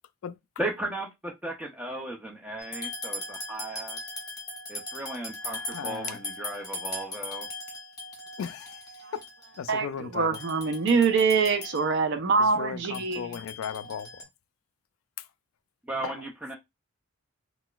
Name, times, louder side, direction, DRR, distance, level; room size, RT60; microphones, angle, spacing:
voice 1, 0.6-4.0 4.7-7.5 15.8-16.6, right 2 dB, 5° right, 0.4 m, -36 dB
sound 1, 2.6-9.9 10.3-11.9 12.9-14.2, left 2 dB, 15° left, 1.0 m, -39 dB
voice 2, 5.7-6.2 8.4-8.8 9.6-10.3 12.6-14.1 16.0-16.1, left 7 dB, 75° left, 0.3 m, -36 dB
voice 3, 9.7-13.4, right 5 dB, 55° right, 0.5 m, -25 dB
3.8 x 2.4 x 2.2 m
head